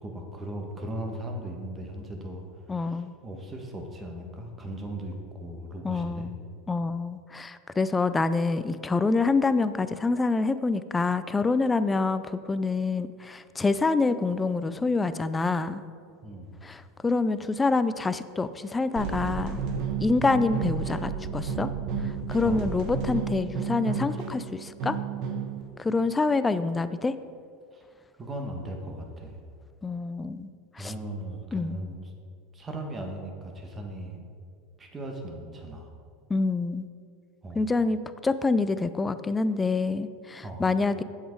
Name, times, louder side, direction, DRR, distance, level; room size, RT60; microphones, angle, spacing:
voice 1, 0.0-2.4 2.7-6.3 16.2-16.6 20.0-20.2 22.4-22.7 27.7-27.8 28.2-29.4 30.8-32.1 32.5-34.2 34.8-35.9 37.4-37.6 40.4-40.6, right 1 dB, 25° right, 2 dB, 1.7 m, -38 dB
voice 2, 2.7-3.1 5.8-6.4 6.7-15.8 16.6-19.6 20.0-21.7 22.0-25.0 25.8-27.1 29.8-30.9 31.5-31.8 36.3-36.9 37.5-41.0, left 3 dB, 15° left, 13 dB, 0.5 m, -26 dB
sound 1, 19.0-25.6, right 5 dB, 55° right, 1.3 m, -32 dB
7.9 x 7.5 x 4.7 m, 2.2 s
hypercardioid pair, 90°, 0 cm